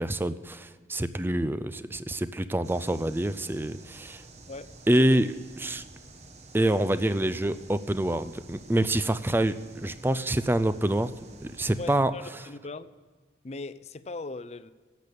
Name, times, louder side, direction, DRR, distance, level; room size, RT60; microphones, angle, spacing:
voice 1, 0.0-4.2 4.9-5.3 5.6-5.8 6.5-11.1 11.4-12.1, right 1 dB, 10° right, 13 dB, 0.5 m, -26 dB
sound 1, 2.6-12.0, right 2 dB, 40° right, 1.1 m, -50 dB
voice 2, 11.8-12.9 13.4-14.7, left 3 dB, 35° left, 14 dB, 0.5 m, -39 dB
12.0 x 8.2 x 6.8 m, 1.5 s
head